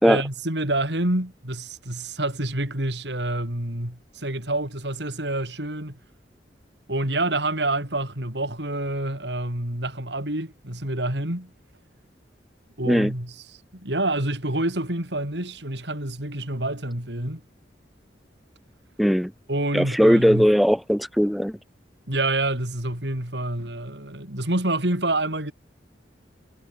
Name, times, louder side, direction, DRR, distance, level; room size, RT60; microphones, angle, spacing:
voice 1, 0.0-6.0 6.9-11.5 12.8-13.3 13.7-17.4 19.5-20.5 22.1-25.5, right 1 dB, 75° right, 5.9 m, -27 dB
voice 2, 19.0-19.3 19.7-21.6, equal, ahead, 3.0 m, -19 dB
head